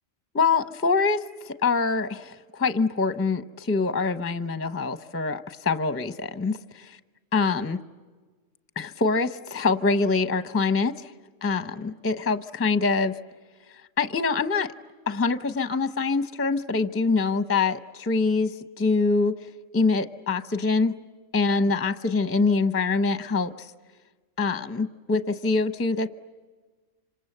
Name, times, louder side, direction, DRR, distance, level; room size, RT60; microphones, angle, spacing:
voice 1, 0.3-7.0 7.3-7.8 8.8-11.1 11.4-13.1 14.0-14.7 15.1-18.5 18.8-19.3 19.7-20.9 21.3-23.7 24.4-26.1, left 4 dB, 15° left, 11 dB, 0.5 m, -24 dB
27.0 x 26.5 x 7.9 m, 1.3 s
omnidirectional pair, 1.4 m